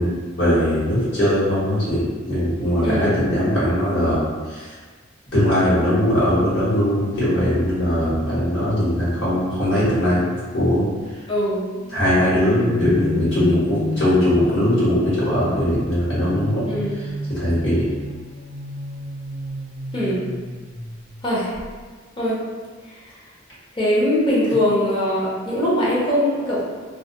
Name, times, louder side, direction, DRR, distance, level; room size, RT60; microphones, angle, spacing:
voice 1, 0.0-4.7 5.3-10.2 10.5-10.8 11.9-16.6 17.3-17.8, equal, 65° left, -10 dB, 1.2 m, -20 dB
voice 2, 2.8-3.2 11.3-11.7 16.7-17.0 19.9-20.2 21.2-21.6 22.2-22.4 22.8-23.0 23.8-26.8, left 1 dB, 25° left, -7 dB, 0.6 m, -21 dB
sound 1, 10.0-11.1 11.7-15.0 16.0-21.2 21.5-21.8, left 1 dB, 35° right, 0.4 m, -33 dB
2.3 x 2.1 x 2.7 m, 1.4 s
head